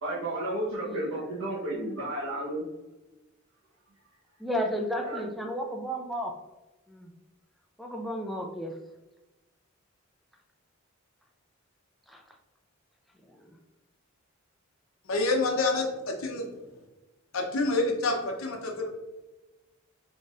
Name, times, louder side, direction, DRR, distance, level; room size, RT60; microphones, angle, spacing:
voice 1, 0.0-2.6 5.0-5.2, right 1 dB, 90° right, -9 dB, 1.1 m, -32 dB
voice 2, 0.8-1.3 4.4-6.3 6.9-7.1 7.8-8.7 12.1-12.2, equal, ahead, 1 dB, 0.3 m, -33 dB
voice 3, 15.1-16.4 17.3-18.9, left 2 dB, 75° left, 1 dB, 0.7 m, -27 dB
4.0 x 3.8 x 2.4 m, 1.1 s
head